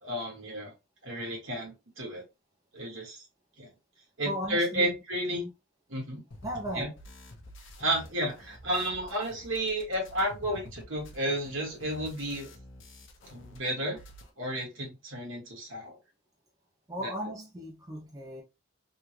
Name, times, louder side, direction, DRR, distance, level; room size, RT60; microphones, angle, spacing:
voice 1, 0.0-0.7 1.0-2.2 2.7-3.2 3.6-3.7 4.2-5.4 5.9-6.2 6.7-6.9 7.8-12.5 13.3-14.0 14.4-16.0, right 1 dB, 65° right, 1.6 m, -32 dB
voice 2, 4.2-4.9 5.3-5.5 6.4-7.0 16.9-18.4, equal, 15° right, 0.5 m, -36 dB
sound 1, 6.3-13.6 13.8-14.3, left 1 dB, 55° left, 0.8 m, -49 dB
3.6 x 2.3 x 2.9 m
head